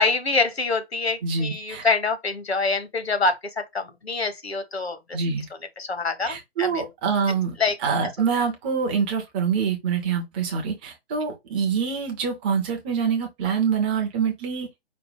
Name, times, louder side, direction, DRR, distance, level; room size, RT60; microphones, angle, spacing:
voice 1, 0.0-3.4 3.7-5.2 5.8-6.8 7.6-7.8, left 4 dB, 75° left, 1.3 m, -25 dB
voice 2, 1.2-1.9 5.1-5.5 6.3-14.7, right 6 dB, 10° right, 0.4 m, -25 dB
5.1 x 2.1 x 4.8 m
figure-of-eight pair, 130°, 32 cm